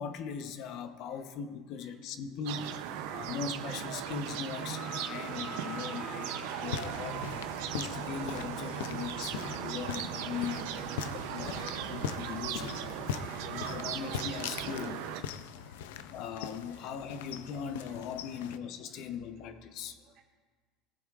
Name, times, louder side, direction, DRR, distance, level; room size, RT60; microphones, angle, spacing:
voice 1, 0.0-2.8 3.1-7.5 7.7-12.8 13.1-15.0 16.1-20.0, left 7 dB, 55° left, 9 dB, 0.8 m, -40 dB
sound 1, 2.4-15.2, right 10 dB, 75° right, 0.6 m, -38 dB
voice 2, 2.9-3.3 13.1-13.9 15.5-15.9 16.7-16.9 17.8-18.0 18.3-18.5 18.9-19.1 20.0-20.2, right 6 dB, 50° right, 0 dB, 1.2 m, -63 dB
sound 2, 3.0-3.1 4.1-7.3 9.1-9.2, left 4 dB, 25° left, 0.7 m, -47 dB
sound 3, 6.6-18.6, left 8 dB, 90° left, 0.5 m, -41 dB
17.5 x 7.1 x 2.5 m, 1.4 s
supercardioid pair, 120°, 0 cm